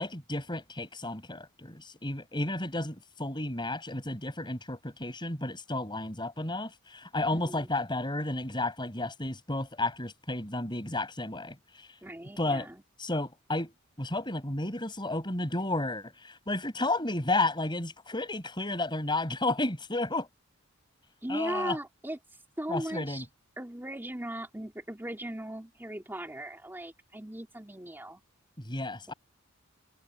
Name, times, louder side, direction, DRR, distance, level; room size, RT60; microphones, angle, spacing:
voice 1, 0.0-11.5 12.4-12.7 13.0-13.7 14.0-20.3 21.3-21.8 22.7-23.2 28.6-29.1, left 2 dB, 20° left, 6.3 m, -32 dB
voice 2, 7.3-7.7 12.0-12.8 21.2-23.3 23.6-28.2, right 1 dB, 10° right, 3.1 m, -38 dB
head